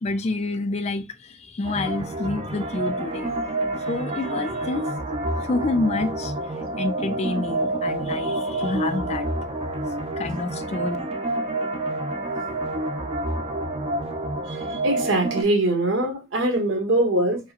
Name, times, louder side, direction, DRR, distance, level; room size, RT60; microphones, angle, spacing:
voice 1, 0.0-3.3 3.9-4.9 5.4-9.3 10.2-11.0, left 2 dB, 35° left, 0.4 m, -28 dB
sound 1, 1.6-15.4, right 1 dB, 30° right, 0.5 m, -28 dB
voice 2, 14.8-17.4, right 1 dB, 85° right, 1.3 m, -22 dB
4.6 x 2.2 x 2.8 m
head